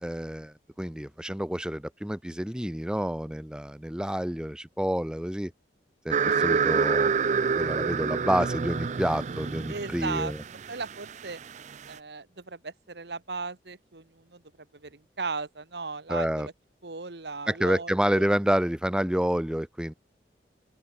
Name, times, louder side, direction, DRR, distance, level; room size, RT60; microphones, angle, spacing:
voice 1, 0.0-5.5 6.0-7.2 7.6-10.4 16.1-16.5 17.5-19.9, equal, 5° right, 0.8 m, -28 dB
sound 1, 6.1-11.9, right 5 dB, 40° right, 0.4 m, -27 dB
voice 2, 9.7-10.3 10.7-11.4 11.9-14.4 14.8-16.5 16.8-18.3, right 4 dB, 70° right, 1.4 m, -36 dB
open air
head